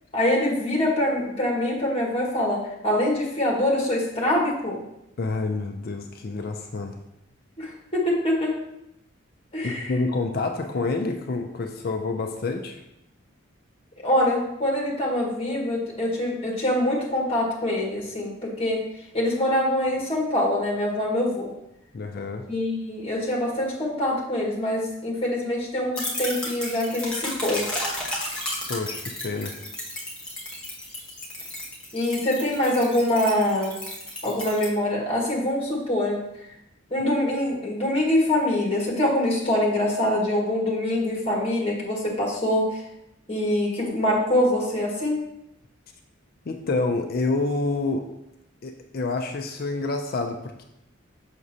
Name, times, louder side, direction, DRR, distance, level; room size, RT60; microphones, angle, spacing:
voice 1, 0.1-4.8 7.6-8.6 9.5-9.9 14.0-18.8 19.1-21.5 22.5-27.6 31.9-33.7 34.2-36.2 36.9-42.8 43.3-45.2, left 1 dB, 25° left, -3 dB, 1.5 m, -24 dB
voice 2, 5.2-7.0 9.6-12.8 21.9-22.4 28.7-29.5 46.5-48.1 48.6-50.6, left 3 dB, 45° left, 4 dB, 0.4 m, -28 dB
sound 1, 25.9-34.7, left 1 dB, 5° left, 1.1 m, -33 dB
6.3 x 5.9 x 2.7 m, 0.83 s
head